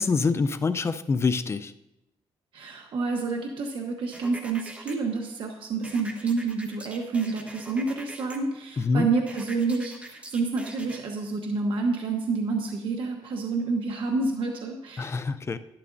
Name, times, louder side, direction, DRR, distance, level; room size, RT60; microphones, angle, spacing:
voice 1, 0.0-1.7 8.8-9.1 15.0-15.6, left 4 dB, 30° left, 12 dB, 0.4 m, -25 dB
voice 2, 2.5-15.1, right 4 dB, 65° right, 1 dB, 1.0 m, -28 dB
sound 1, 4.1-5.0 5.8-8.4 9.3-11.0, right 1 dB, 15° right, 1.1 m, -43 dB
12.0 x 11.0 x 2.6 m, 0.91 s
cardioid pair, 125°, 9 cm